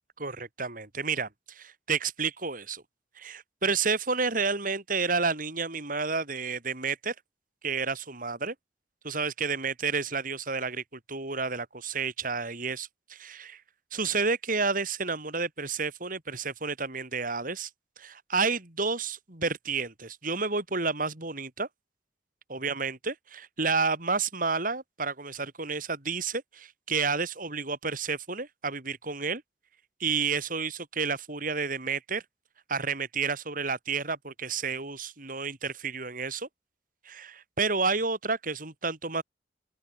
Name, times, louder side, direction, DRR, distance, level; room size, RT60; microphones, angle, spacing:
voice 1, 0.2-2.8 3.2-7.1 7.6-8.5 9.0-13.6 13.9-17.7 18.0-21.7 22.5-29.4 30.0-32.2 32.7-36.5 37.1-39.2, right 4 dB, 50° right, 4.1 m, -30 dB
open air
head